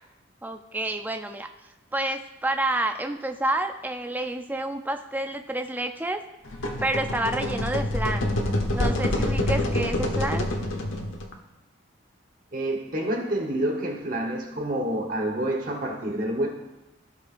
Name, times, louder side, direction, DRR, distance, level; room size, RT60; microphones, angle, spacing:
voice 1, 0.4-1.5 1.9-6.2 6.8-8.3 8.7-10.5, right 1 dB, 10° right, 6 dB, 0.4 m, -29 dB
sound 1, 6.5-11.3, left 1 dB, 90° left, 1.1 m, -26 dB
voice 2, 12.5-16.5, right 1 dB, 45° right, 1 dB, 1.2 m, -28 dB
15.5 x 5.4 x 2.6 m, 1.0 s
head